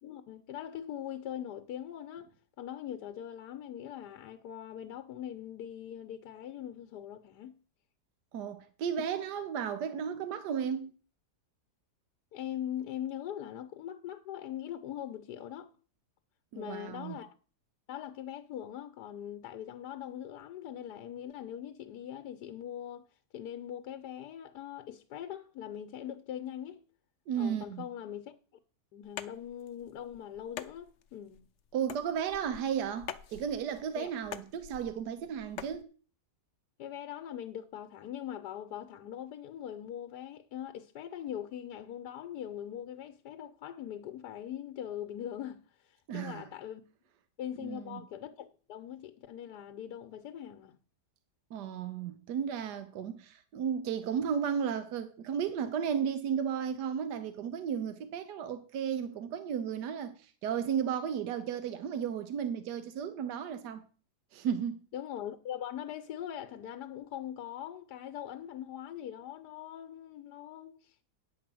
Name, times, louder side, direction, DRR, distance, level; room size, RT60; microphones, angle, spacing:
voice 1, 0.0-7.6 12.3-15.7 16.5-17.3 17.9-23.1 23.3-26.8 27.4-28.4 28.9-31.5 33.9-34.1 36.8-45.6 45.9-46.8 47.4-50.8 64.9-71.0, left 10 dB, 80° left, 1.3 m, -41 dB
voice 2, 8.3-10.9 16.5-17.2 27.3-27.9 31.7-35.9 46.1-46.4 47.6-48.0 51.5-63.9 64.3-64.8, right 8 dB, 80° right, 1.4 m, -34 dB
sound 1, 29.0-35.8, left 9 dB, 60° left, 0.8 m, -46 dB
9.6 x 4.7 x 7.6 m
omnidirectional pair, 1.8 m